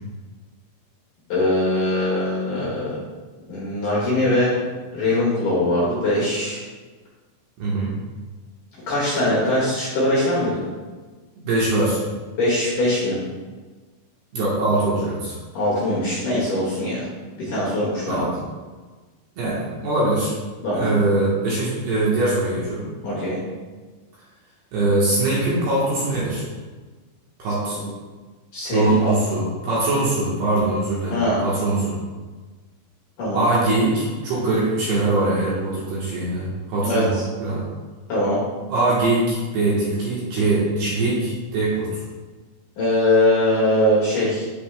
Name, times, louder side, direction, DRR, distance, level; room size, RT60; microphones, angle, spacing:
voice 1, 1.3-3.0 3.5-4.6 4.9-6.6 8.9-10.6 12.4-13.2 15.5-17.1 17.4-18.3 20.6-20.9 23.0-23.4 27.8-27.9 28.5-29.1 31.1-31.4 33.2-33.4 36.8-37.2 38.1-38.4 42.8-44.4, left 1 dB, 55° left, -8 dB, 2.7 m, -21 dB
voice 2, 7.6-7.9 11.4-12.0 14.3-15.4 18.1-18.3 19.4-20.3 20.7-22.9 24.7-26.4 27.4-27.8 28.7-32.0 33.3-37.6 38.7-42.0, right 2 dB, 65° right, -7 dB, 2.8 m, -22 dB
11.5 x 5.3 x 2.2 m, 1.3 s
omnidirectional pair, 5.8 m